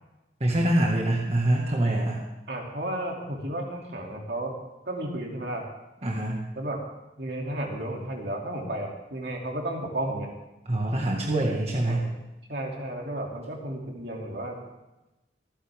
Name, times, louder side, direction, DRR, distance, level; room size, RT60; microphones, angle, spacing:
voice 1, 0.4-2.2 6.0-6.4 10.7-12.1, right 1 dB, 35° right, -2 dB, 1.8 m, -25 dB
voice 2, 2.5-4.5 4.8-5.6 6.5-6.8 7.2-10.3 11.9-12.1 12.5-14.6, right 1 dB, 65° right, 0 dB, 2.8 m, -33 dB
25.0 x 10.0 x 3.6 m, 0.99 s
head